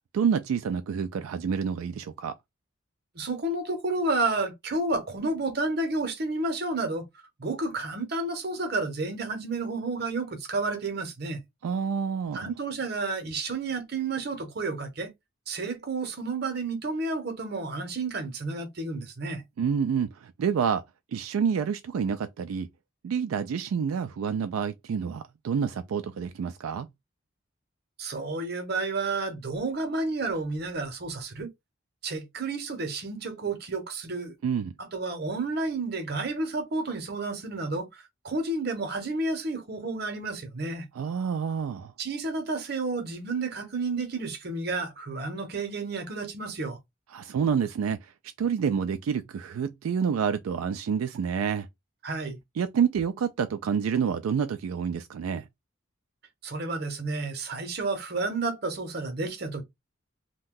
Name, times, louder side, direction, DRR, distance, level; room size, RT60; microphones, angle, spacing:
voice 1, 0.1-2.3 11.6-12.5 19.6-20.8 21.1-22.7 23.0-26.9 34.4-34.7 41.0-41.9 47.1-48.1 48.4-51.7 52.6-55.4, right 7 dB, 85° right, 0.3 m, -28 dB
voice 2, 3.1-11.4 12.3-15.1 15.5-19.4 28.0-31.5 32.0-34.4 34.8-40.9 42.0-46.8 52.0-52.4 56.4-59.6, right 3 dB, 50° right, 0.8 m, -31 dB
2.6 x 2.2 x 3.7 m
head